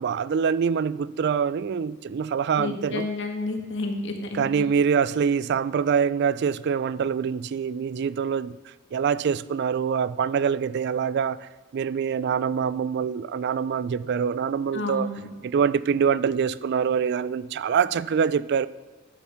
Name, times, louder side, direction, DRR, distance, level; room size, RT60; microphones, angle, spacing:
voice 1, 0.0-3.1 4.3-8.5 8.9-15.1 15.4-18.7, right 7 dB, 55° right, 0.3 m, -25 dB
voice 2, 2.6-4.7 14.7-15.3, left 2 dB, 60° left, 1.6 m, -30 dB
10.5 x 7.2 x 5.6 m
head